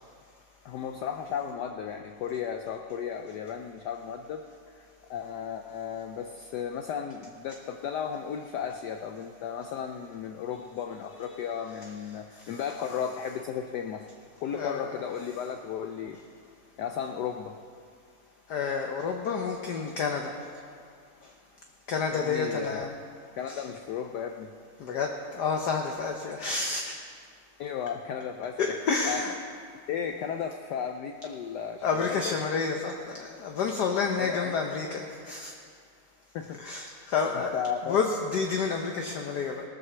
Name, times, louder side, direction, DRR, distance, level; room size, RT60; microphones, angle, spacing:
voice 1, 0.6-4.4 4.7-4.8 5.1-14.1 14.4-16.2 16.8-17.5 22.1-22.9 23.3-24.5 27.6-28.7 29.0-29.2 29.9-32.4 34.2-34.6 36.3-37.0 37.5-38.0, left 8 dB, 80° left, 5 dB, 0.9 m, -34 dB
voice 2, 14.5-14.9 18.5-20.3 21.9-22.9 23.5-23.6 24.8-26.9 28.6-29.4 31.8-35.5 36.6-37.5 37.9-39.6, left 5 dB, 60° left, 3 dB, 1.1 m, -29 dB
18.5 x 6.3 x 6.8 m, 2.2 s
omnidirectional pair, 2.4 m